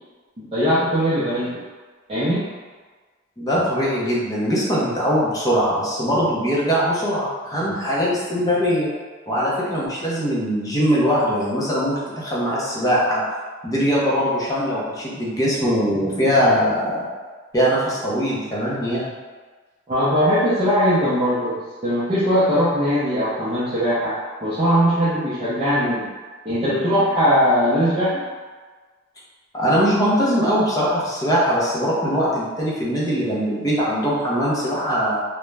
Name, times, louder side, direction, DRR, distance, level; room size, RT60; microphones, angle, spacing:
voice 1, 0.5-1.5 2.1-2.4 19.9-26.1 26.5-28.2, equal, 30° right, -12 dB, 0.5 m, -20 dB
voice 2, 3.4-8.9 9.3-13.2 13.6-17.1 17.5-19.1 29.5-35.2, equal, 15° left, -7 dB, 0.6 m, -21 dB
2.4 x 2.1 x 3.1 m, 1.4 s
head